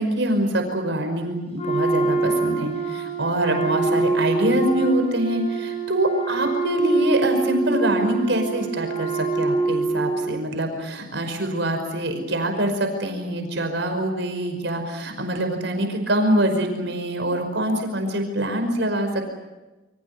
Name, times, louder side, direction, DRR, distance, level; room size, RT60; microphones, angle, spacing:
voice 1, 0.0-19.3, right 1 dB, 70° right, 5 dB, 5.4 m, -24 dB
Wind instrument woodwind instrument, 1.5-10.4, right 3 dB, 35° left, 6.4 m, -25 dB
28.5 x 25.5 x 6.9 m, 1.1 s
head